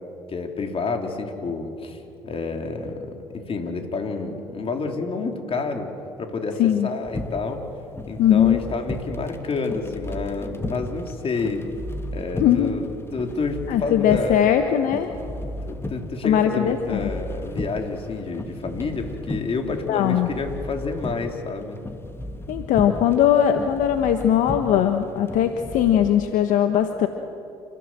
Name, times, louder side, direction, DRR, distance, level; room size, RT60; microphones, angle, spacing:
voice 1, 0.3-5.9 6.2-7.6 8.1-11.6 12.1-14.5 15.6-21.8, left 4 dB, 40° left, 4 dB, 3.6 m, -29 dB
sound 1, 7.0-26.1, left 1 dB, 15° left, 2.1 m, -35 dB
voice 2, 8.2-8.6 12.4-12.7 13.7-15.1 16.2-17.1 19.9-20.3 22.5-27.1, left 10 dB, 70° left, 7 dB, 1.3 m, -20 dB
29.5 x 15.5 x 7.6 m, 2.7 s
hypercardioid pair, 60°, 14 cm